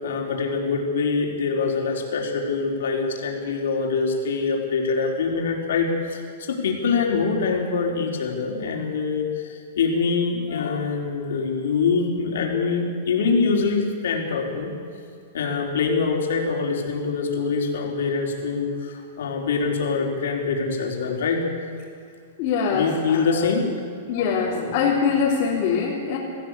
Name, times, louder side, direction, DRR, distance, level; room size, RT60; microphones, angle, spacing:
voice 1, 0.0-14.7 15.3-21.4 22.7-23.7 24.1-24.8, left 4 dB, 80° left, 0 dB, 4.5 m, -24 dB
voice 2, 22.4-23.2 24.1-26.2, left 6 dB, 40° left, -6 dB, 3.6 m, -23 dB
22.5 x 15.0 x 8.5 m, 2.3 s
supercardioid pair, 165°, 0 cm